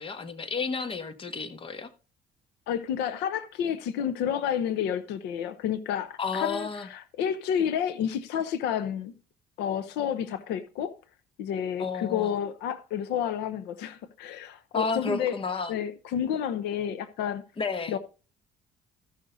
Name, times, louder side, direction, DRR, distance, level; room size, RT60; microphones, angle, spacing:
voice 1, 0.0-1.9 6.2-6.9 11.8-12.3 14.7-15.7 17.6-18.0, left 4 dB, 30° left, 1.2 m, -31 dB
voice 2, 2.7-9.1 9.6-10.9 11.4-15.4 15.7-17.4 17.9-18.0, left 9 dB, 90° left, 0.8 m, -30 dB
14.0 x 6.3 x 3.9 m
cardioid pair, 110°, 17 cm